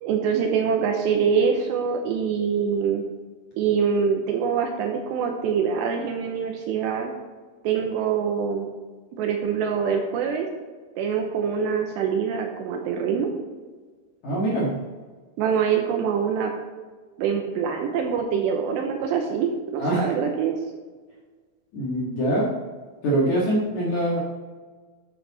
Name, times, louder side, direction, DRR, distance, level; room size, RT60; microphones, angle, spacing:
voice 1, 0.0-3.0 3.6-7.1 7.6-8.7 9.2-10.5 11.0-13.3 15.4-16.5 17.2-20.6, right 6 dB, 80° right, 2 dB, 2.7 m, -24 dB
voice 2, 14.2-14.7 19.8-20.1 21.7-22.5 23.0-24.2, right 1 dB, 55° left, -5 dB, 2.2 m, -23 dB
10.5 x 7.6 x 4.1 m, 1.4 s
omnidirectional pair, 5.6 m